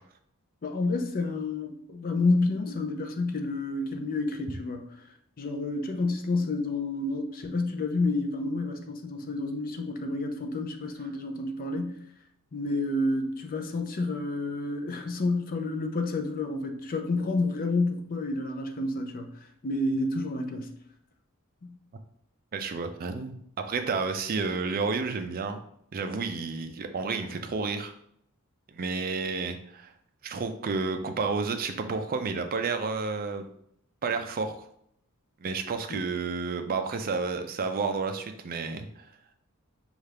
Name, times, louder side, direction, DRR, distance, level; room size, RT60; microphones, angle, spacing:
voice 1, 0.6-4.9 5.4-12.0 12.5-19.3 19.6-20.7 21.6-21.8 35.9-36.0, left 2 dB, 40° left, 5 dB, 0.5 m, -29 dB
voice 2, 22.5-25.6 25.9-27.9 28.7-29.9 30.2-33.5 34.0-34.7 35.4-39.0, right 4 dB, 45° right, 7 dB, 0.4 m, -31 dB
5.5 x 2.4 x 3.3 m, 0.70 s
head